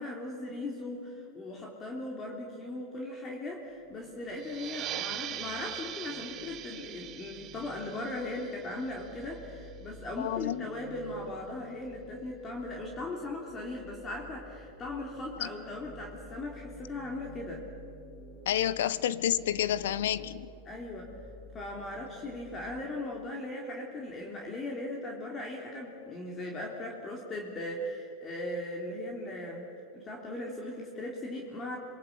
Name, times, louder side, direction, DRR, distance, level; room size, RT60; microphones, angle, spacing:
voice 1, 0.0-17.6 20.7-21.1 21.5-29.7 29.9-31.8, left 1 dB, 25° left, -1 dB, 3.7 m, -38 dB
sound 1, 3.5-22.8, left 1 dB, ahead, 4.6 m, -52 dB
sound 2, 4.4-9.6, right 11 dB, 35° right, 1.6 m, -41 dB
voice 2, 10.2-10.7 15.4-15.5 18.5-20.5, left 11 dB, 75° left, 17 dB, 1.0 m, -29 dB
27.0 x 22.5 x 8.6 m, 2.8 s
hypercardioid pair, 125°, 0 cm